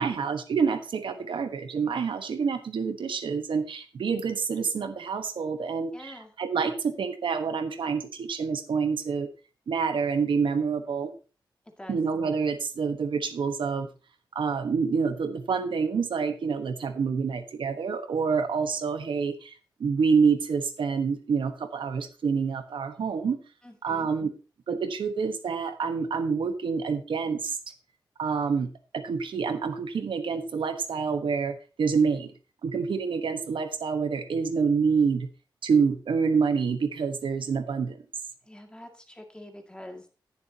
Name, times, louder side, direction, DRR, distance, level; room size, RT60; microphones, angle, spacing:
voice 1, 0.0-9.3 9.7-11.1 11.9-13.9 14.3-19.5 19.8-23.4 23.8-24.3 24.7-27.6 28.2-32.3 32.6-35.3 35.6-38.0, right 5 dB, 80° right, 8 dB, 1.2 m, -27 dB
voice 2, 5.9-6.3 11.8-12.0 23.6-24.2 38.4-40.1, left 1 dB, 10° left, 4 dB, 2.1 m, -45 dB
18.0 x 7.1 x 2.8 m, 0.34 s
wide cardioid pair, 120°, 8 cm